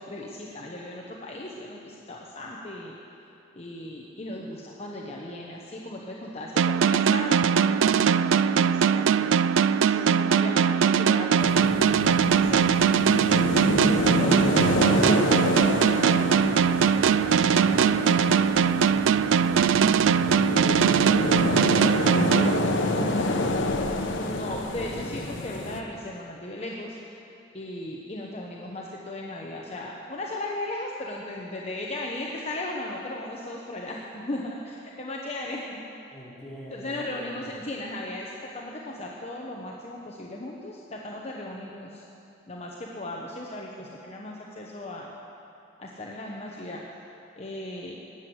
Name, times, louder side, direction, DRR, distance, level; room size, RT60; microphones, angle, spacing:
voice 1, 0.0-2.9 3.5-9.3 9.6-14.6 24.1-27.2 27.5-35.8 36.7-42.1 42.5-45.1 45.8-47.0 47.4-47.9, left 1 dB, 35° left, -2 dB, 1.1 m, -37 dB
sound 1, 6.6-23.2, right 7 dB, 90° right, 0.4 m, -21 dB
voice 2, 8.8-9.2 14.0-19.7 36.1-37.5, equal, ahead, -9 dB, 4.4 m, -45 dB
sound 2, 11.4-25.8, left 2 dB, 75° left, 1.1 m, -28 dB
19.5 x 8.1 x 8.0 m, 2.8 s
head